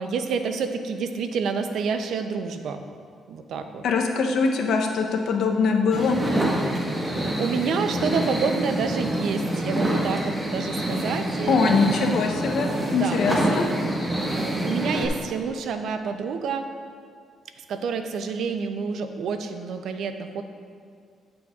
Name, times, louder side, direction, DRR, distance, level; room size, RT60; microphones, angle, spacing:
voice 1, 0.0-2.8 3.3-3.8 7.4-11.9 12.9-13.2 14.2-16.7 17.7-20.4, right 5 dB, 70° right, 7 dB, 0.5 m, -28 dB
voice 2, 3.8-6.2 11.5-13.7, left 4 dB, 70° left, 3 dB, 0.7 m, -22 dB
sound 1, 5.9-15.1, right 1 dB, 20° right, 1.2 m, -26 dB
9.9 x 6.1 x 2.4 m, 2.2 s
cardioid pair, 90°, 0 cm